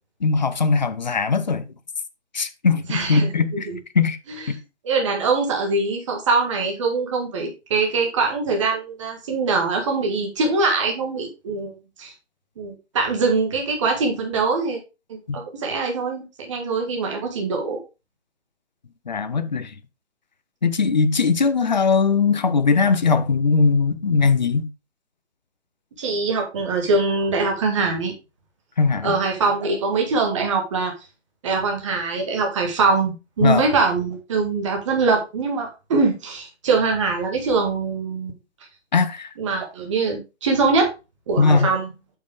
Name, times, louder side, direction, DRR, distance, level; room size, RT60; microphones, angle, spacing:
voice 1, 0.2-1.7 2.3-3.7 3.9-4.2 15.3-15.4 19.1-19.7 20.6-24.7 28.8-29.1 33.4-33.7 38.9-39.3 41.4-41.7, left 4 dB, 40° left, 0.7 m, -19 dB
voice 2, 2.9-3.8 4.8-11.7 12.0-12.1 12.6-14.8 15.3-17.8 26.0-28.1 29.0-30.9 31.4-38.3 39.4-40.9 41.3-41.9, right 4 dB, 25° right, 1.9 m, -23 dB
8.6 x 5.5 x 3.4 m
figure-of-eight pair, 145°, 36 cm